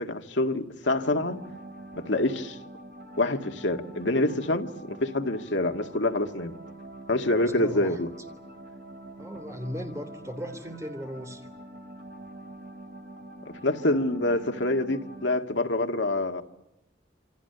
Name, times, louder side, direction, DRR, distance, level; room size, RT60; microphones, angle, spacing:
voice 1, 0.0-1.4 1.9-2.6 3.2-6.5 7.1-8.1 13.5-16.4, left 2 dB, 80° left, 2.0 m, -26 dB
sound 1, 0.8-15.3, right 1 dB, 50° right, 3.5 m, -45 dB
voice 2, 7.4-8.0 9.2-11.5, equal, 15° right, 3.4 m, -37 dB
28.0 x 25.5 x 6.9 m
head